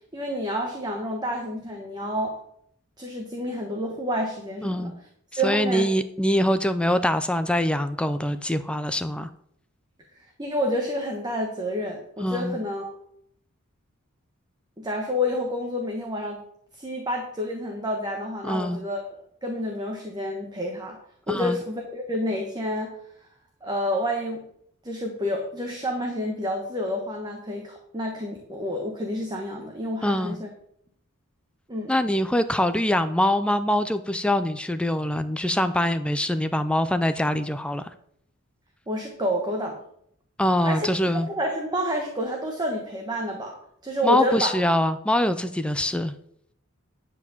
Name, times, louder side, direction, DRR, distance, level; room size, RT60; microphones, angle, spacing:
voice 1, 0.1-2.4 3.0-4.9 5.4-5.9 10.4-12.9 14.8-16.4 16.8-19.0 19.4-21.0 21.3-23.0 23.6-24.5 24.8-30.5 31.7-31.9 38.9-39.8 40.6-43.6 43.8-44.5, equal, 20° right, 1 dB, 1.2 m, -29 dB
voice 2, 4.6-4.9 5.3-9.3 12.2-12.6 18.4-18.8 21.3-21.6 30.0-30.4 31.9-37.9 40.4-41.3 44.0-46.1, left 1 dB, 5° left, 11 dB, 0.4 m, -24 dB
10.5 x 4.5 x 7.1 m, 0.69 s
head